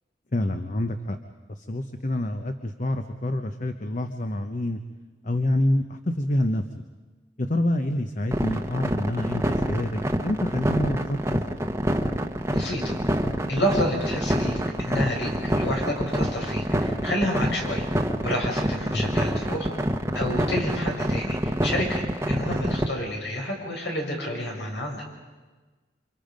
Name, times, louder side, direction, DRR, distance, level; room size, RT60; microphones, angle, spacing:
voice 1, 0.3-1.2 1.6-4.8 5.2-6.8 7.4-11.7 18.9-19.2, left 1 dB, 45° left, 7 dB, 1.0 m, -27 dB
sound 1, 8.3-22.9, equal, 15° right, 1.1 m, -26 dB
voice 2, 12.5-13.0 13.5-17.9 18.2-19.7 20.1-25.0, left 1 dB, 85° left, -1 dB, 6.5 m, -29 dB
28.5 x 26.0 x 5.2 m, 1.3 s
head